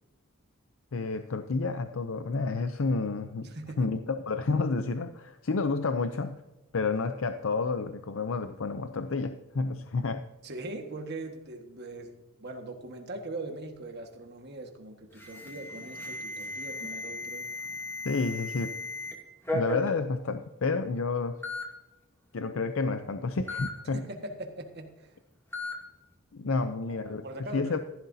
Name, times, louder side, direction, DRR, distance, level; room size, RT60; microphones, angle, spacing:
voice 1, 0.9-3.5 3.8-6.4 6.7-10.2 18.0-18.7 19.5-21.4 22.3-24.0 26.3-27.2 27.5-27.8, left 4 dB, 65° left, 8 dB, 0.6 m, -30 dB
voice 2, 3.4-3.9 10.4-12.1 12.4-17.5 23.9-25.2 26.9-27.8, right 2 dB, 50° right, 4 dB, 1.6 m, -41 dB
Alarm, 15.2-19.1 19.5-19.9 20.7-20.8 21.4-21.6 23.5-23.7 25.5-25.7, left 2 dB, 10° left, 2.5 m, -36 dB
14.5 x 11.5 x 2.7 m, 1.0 s
head